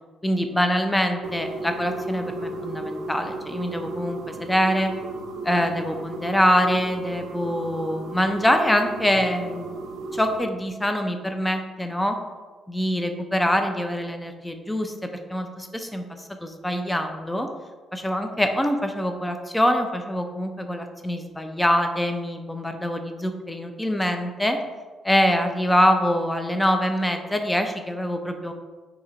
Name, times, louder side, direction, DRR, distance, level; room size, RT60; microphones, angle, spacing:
voice 1, 0.2-4.9 5.4-9.7 10.1-12.2 12.7-14.9 15.3-17.5 17.9-24.6 25.0-28.5, equal, 10° left, 5 dB, 0.4 m, -24 dB
sound 1, 1.2-10.4, right 2 dB, 70° right, 0.4 m, -34 dB
2.8 x 2.4 x 4.1 m, 1.4 s
cardioid pair, 90°, 0 cm